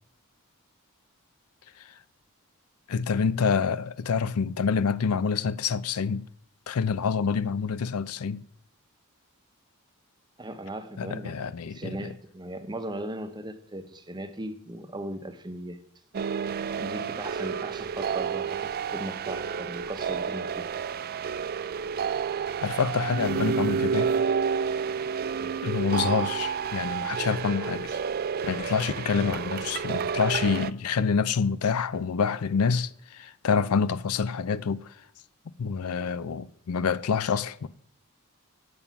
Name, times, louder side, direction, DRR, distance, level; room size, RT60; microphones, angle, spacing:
voice 1, 2.9-6.3 6.7-8.4 11.0-12.0 22.6-24.1 25.6-28.0 28.4-35.0 35.6-37.7, left 6 dB, 80° left, 0.5 m, -27 dB
voice 2, 10.4-11.4 11.6-15.8 16.7-20.7 25.4-25.6, right 1 dB, 20° right, 0.8 m, -38 dB
sound 1, 16.1-30.7, right 6 dB, 45° right, 0.4 m, -30 dB
9.1 x 7.0 x 5.9 m
head